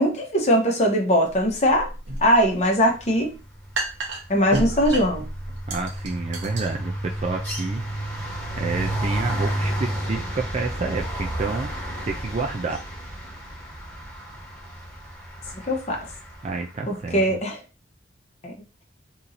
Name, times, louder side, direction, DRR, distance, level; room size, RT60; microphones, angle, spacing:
voice 1, 0.0-1.9 2.2-3.4 4.3-5.3 15.7-16.0 16.9-17.6 18.4-18.5, equal, 35° left, 1 dB, 0.9 m, -21 dB
sound 1, 1.3-9.0, right 2 dB, 75° right, 0.9 m, -34 dB
sound 2, 2.9-3.1 3.4-16.6, right 1 dB, 10° left, 1.3 m, -31 dB
voice 2, 5.7-8.1 8.6-11.7 12.0-12.8 16.4-17.4, right 3 dB, 35° right, 2 dB, 0.4 m, -29 dB
2.9 x 2.7 x 3.8 m, 0.31 s
head